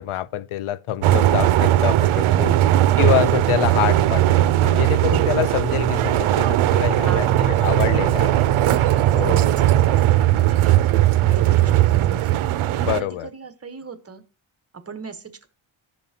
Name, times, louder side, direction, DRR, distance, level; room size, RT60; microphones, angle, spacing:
voice 1, 0.0-2.5 3.0-4.4 4.6-8.5 9.1-9.4 12.8-13.3, left 12 dB, 85° left, 0.6 m, -26 dB
sound 1, 1.0-13.0, right 13 dB, 80° right, 0.5 m, -18 dB
voice 2, 2.2-2.9 5.0-5.5 7.0-14.2 14.7-15.5, right 5 dB, 30° right, 1.0 m, -37 dB
15.5 x 5.4 x 2.8 m
wide cardioid pair, 160°, 49 cm